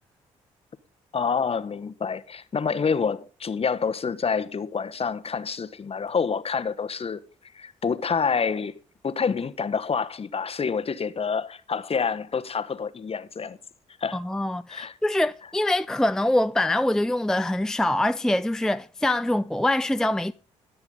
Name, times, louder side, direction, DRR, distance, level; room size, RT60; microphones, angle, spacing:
voice 1, 1.1-7.2 7.5-8.7 9.0-13.6 14.0-14.2 14.7-14.9, left 5 dB, 40° left, 1.2 m, -27 dB
voice 2, 14.1-20.3, left 1 dB, 5° left, 0.5 m, -24 dB
20.0 x 7.0 x 3.8 m
hypercardioid pair, 45°, 16 cm